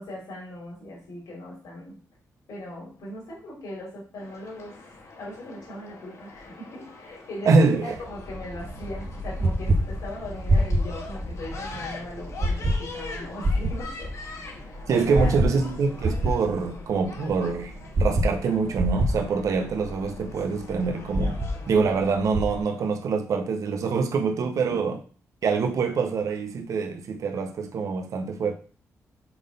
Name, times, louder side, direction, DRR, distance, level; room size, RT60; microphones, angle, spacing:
voice 1, 0.0-2.0 2.5-4.8 5.1-14.1 14.4-15.7 24.5-24.8, left 1 dB, 80° left, 3.0 m, -39 dB
sound 1, 4.2-22.9, left 2 dB, 60° left, 1.6 m, -41 dB
voice 2, 7.4-7.9 14.9-17.7 18.0-21.4 21.7-25.0 25.4-28.5, right 4 dB, 65° right, 0.6 m, -25 dB
sound 2, 8.6-22.6, right 1 dB, 40° right, 0.9 m, -28 dB
5.8 x 3.8 x 5.1 m
cardioid pair, 110°, 6 cm